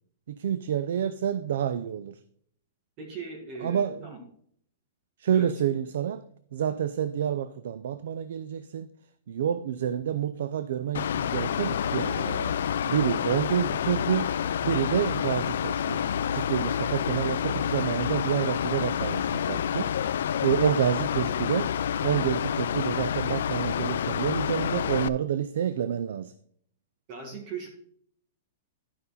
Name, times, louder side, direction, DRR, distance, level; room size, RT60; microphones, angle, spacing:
voice 1, 0.3-2.1 3.6-4.1 5.2-6.2 6.5-8.9 9.3-12.5 12.9-14.3 14.6-16.0 16.3-19.9 20.4-21.7 22.0-26.3, right 9 dB, 65° right, 0.5 m, -28 dB
voice 2, 3.0-4.2 5.3-5.5 27.1-27.7, right 5 dB, 30° right, 1.7 m, -39 dB
Mechanical fan, 10.9-25.1, left 9 dB, 70° left, 0.4 m, -28 dB
11.5 x 5.4 x 4.1 m
hypercardioid pair, 170°, 0 cm